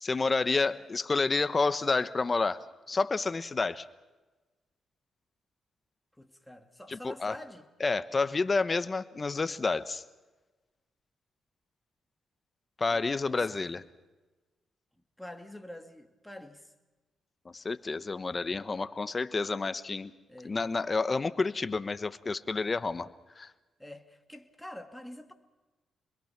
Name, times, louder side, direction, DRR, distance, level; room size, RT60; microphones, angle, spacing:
voice 1, 0.0-2.6 2.9-3.8 6.9-7.3 7.8-10.0 12.8-13.8 17.4-20.1 20.4-23.1 23.4-23.5, left 4 dB, 35° left, 13 dB, 1.1 m, -29 dB
voice 2, 6.2-7.7 12.9-13.6 15.2-16.7 20.3-20.5 23.8-25.3, left 1 dB, 5° left, 5 dB, 2.4 m, -46 dB
27.0 x 21.5 x 6.0 m, 1.2 s
cardioid pair, 75°, 0 cm